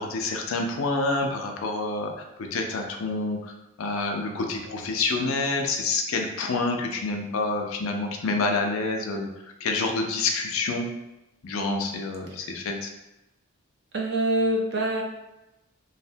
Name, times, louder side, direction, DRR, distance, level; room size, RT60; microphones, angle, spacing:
voice 1, 0.0-2.1 2.5-3.5 3.8-9.3 9.6-10.9 11.4-12.9, left 3 dB, 75° left, 3 dB, 0.4 m, -27 dB
voice 2, 13.9-15.0, right 1 dB, 50° right, 0 dB, 0.5 m, -25 dB
3.2 x 2.0 x 2.6 m, 0.95 s
head